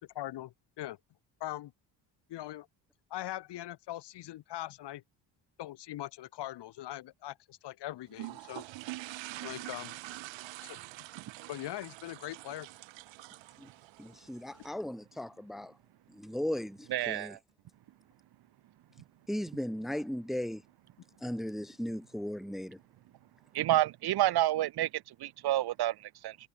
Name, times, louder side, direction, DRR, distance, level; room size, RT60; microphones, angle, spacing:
voice 1, 0.2-1.0 1.4-1.7 2.3-2.7 3.1-5.0 5.6-8.7 9.4-9.9 10.6-10.8 11.5-12.7, left 14 dB, 65° left, 2.0 m, -41 dB
sound 1, 8.1-14.7, right 18 dB, 85° right, 1.2 m, -45 dB
voice 2, 14.0-15.7 16.1-17.4 19.3-20.6 21.2-22.8, left 1 dB, ahead, 0.8 m, -37 dB
voice 3, 16.9-17.4 23.5-26.4, right 14 dB, 60° right, 1.1 m, -29 dB
cardioid pair, 160°, 44 cm